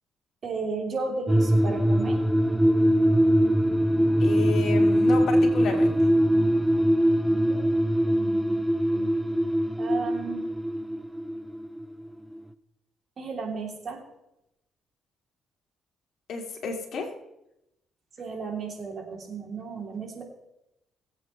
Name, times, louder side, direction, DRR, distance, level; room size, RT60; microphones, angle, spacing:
voice 1, 0.4-2.2 7.3-7.6 8.1-8.6 8.9-9.1 9.8-10.5 13.2-14.0 18.2-20.2, right 4 dB, 45° right, 1 dB, 3.0 m, -34 dB
sound 1, 1.3-12.1 12.3-12.4, equal, 5° right, 0.6 m, -22 dB
voice 2, 4.2-6.4 16.3-17.1, left 4 dB, 65° left, 2 dB, 2.5 m, -32 dB
21.5 x 8.2 x 3.2 m, 0.87 s
cardioid pair, 90°, 0 cm